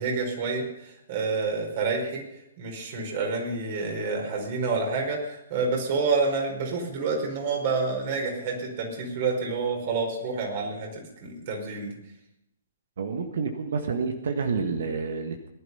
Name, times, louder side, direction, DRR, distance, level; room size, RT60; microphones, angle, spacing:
voice 1, 0.0-2.2 2.6-12.0, right 4 dB, 45° right, 1 dB, 5.1 m, -28 dB
voice 2, 13.0-15.5, right 5 dB, 60° right, 6 dB, 1.6 m, -29 dB
19.0 x 11.5 x 5.7 m, 0.83 s
figure-of-eight pair, 120°, 0 cm